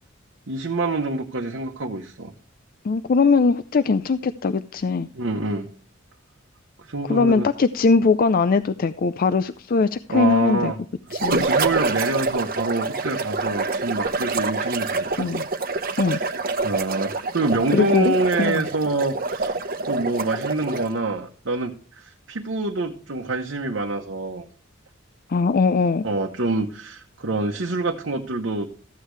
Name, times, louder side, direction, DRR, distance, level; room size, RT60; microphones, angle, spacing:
voice 1, 0.5-2.3 5.1-5.7 6.8-7.5 10.1-10.8 11.3-15.3 16.0-16.3 16.6-19.6 19.9-24.4 26.0-28.7, right 2 dB, 70° right, 1 dB, 1.0 m, -26 dB
voice 2, 2.8-5.1 7.0-10.7 11.1-11.5 15.2-15.4 16.0-16.2 17.7-18.7 25.3-26.1, left 4 dB, 45° left, 12 dB, 0.4 m, -20 dB
sound 1, 11.1-21.0, right 3 dB, 45° right, 0.9 m, -26 dB
14.0 x 8.2 x 3.2 m, 0.43 s
head